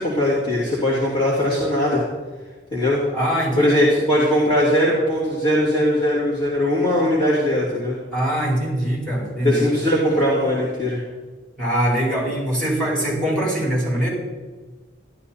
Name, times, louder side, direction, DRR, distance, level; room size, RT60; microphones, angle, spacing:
voice 1, 0.0-2.0 2.7-3.1 3.6-8.0 9.4-11.0, left 1 dB, 25° left, -8 dB, 2.9 m, -20 dB
voice 2, 3.1-3.7 8.1-9.7 11.6-14.1, right 1 dB, 5° left, -4 dB, 4.5 m, -22 dB
12.5 x 12.5 x 4.3 m, 1.3 s
head